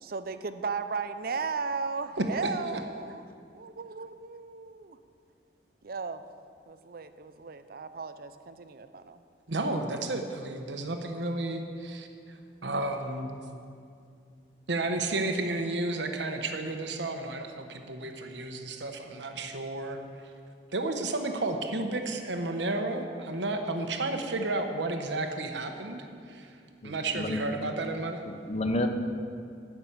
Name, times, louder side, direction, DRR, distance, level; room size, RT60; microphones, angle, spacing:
voice 1, 0.0-3.2 3.5-5.0 5.8-6.3 6.7-9.2, right 4 dB, 55° right, 11 dB, 0.5 m, -36 dB
voice 2, 2.2-2.5 9.5-13.3 14.7-20.3 20.7-26.6 26.8-28.2, right 2 dB, 90° right, 5 dB, 1.1 m, -32 dB
voice 3, 26.8-27.4 28.3-28.9, left 1 dB, 35° left, 6 dB, 0.8 m, -30 dB
12.5 x 6.0 x 8.7 m, 2.4 s
head